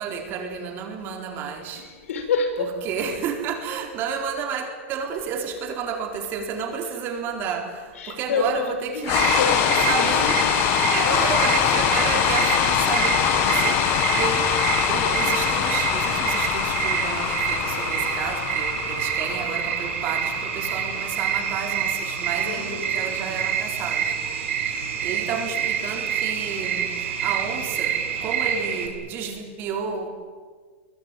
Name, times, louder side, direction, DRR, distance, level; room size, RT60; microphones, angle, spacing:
voice 1, 0.0-1.9 2.6-9.4 9.9-10.4 10.8-14.5 14.9-30.1, right 6 dB, 30° right, 4 dB, 4.2 m, -31 dB
voice 2, 2.0-2.7 8.0-10.1 11.0-11.2 22.5-23.1, left 4 dB, 75° left, 6 dB, 6.6 m, -27 dB
sound 1, 9.0-23.2, left 11 dB, 30° left, 1.9 m, -24 dB
sound 2, 9.1-28.9, right 8 dB, 60° right, 7.5 m, -27 dB
25.0 x 22.5 x 9.1 m, 1.5 s
supercardioid pair, 155°, 7 cm